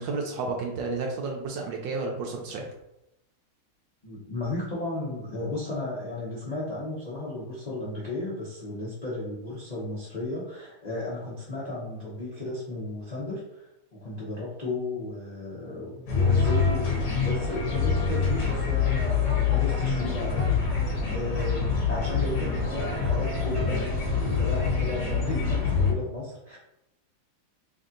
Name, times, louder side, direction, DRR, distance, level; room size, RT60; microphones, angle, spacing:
voice 1, 0.0-2.7, right 3 dB, 75° right, 1 dB, 1.2 m, -31 dB
voice 2, 4.0-26.6, left 2 dB, 85° left, -7 dB, 0.3 m, -34 dB
sound 1, 16.1-25.9, left 5 dB, 60° left, 1.3 m, -25 dB
3.4 x 2.7 x 3.7 m, 0.86 s
omnidirectional pair, 2.4 m